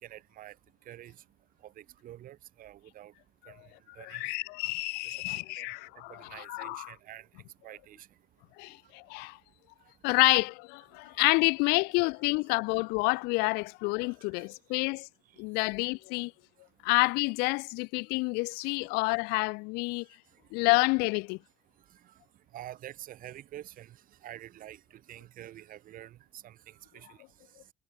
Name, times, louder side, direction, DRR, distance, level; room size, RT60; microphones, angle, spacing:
voice 1, 0.0-0.5 0.9-1.1 1.6-3.1 3.5-3.6 4.0-4.2 5.6-5.7 6.1-7.3 7.6-8.1 22.5-23.9 24.2-24.8 25.1-27.2, right 13 dB, 60° right, 6.4 m, -47 dB
voice 2, 4.0-6.9 8.6-9.4 10.0-15.1 15.4-16.3 16.8-20.1 20.5-21.4, left 28 dB, 75° left, 1.9 m, -28 dB
supercardioid pair, 85°, 16 cm